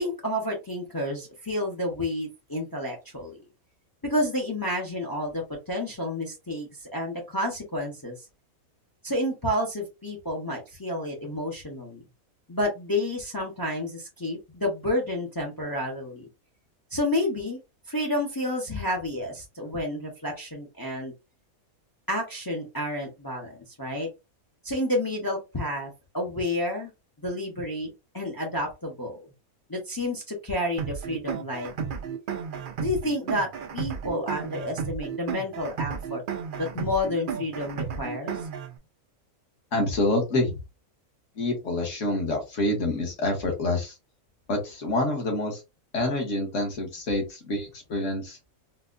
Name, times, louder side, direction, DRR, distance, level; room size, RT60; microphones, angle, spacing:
voice 1, 0.0-3.4 4.0-8.1 9.0-12.0 12.5-16.3 16.9-17.6 17.9-21.1 22.1-24.1 24.6-26.9 27.2-29.3 29.7-31.9 32.8-36.2 36.6-38.4, left 1 dB, 25° left, 1 dB, 0.5 m, -30 dB
sound 1, 30.8-38.8, right 7 dB, 80° right, 0.4 m, -33 dB
voice 2, 39.7-40.6 41.3-43.9 44.5-45.6 45.9-48.4, left 2 dB, 60° left, 2 dB, 1.5 m, -27 dB
4.0 x 2.1 x 2.4 m, 0.25 s
omnidirectional pair, 1.5 m